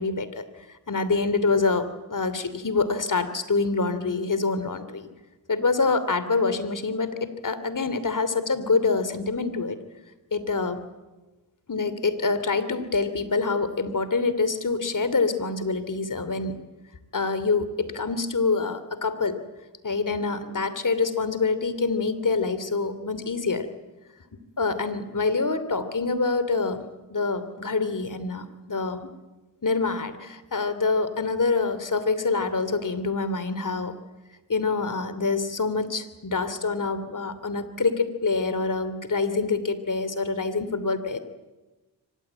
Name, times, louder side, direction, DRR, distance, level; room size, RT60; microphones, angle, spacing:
voice 1, 0.0-5.1 5.5-9.8 10.3-10.8 11.7-16.6 17.1-19.4 19.8-23.7 24.6-29.1 29.6-33.9 34.5-41.2, left 4 dB, 45° left, 12 dB, 3.0 m, -26 dB
24.5 x 19.0 x 9.0 m, 1.1 s
cardioid pair, 40°, 42 cm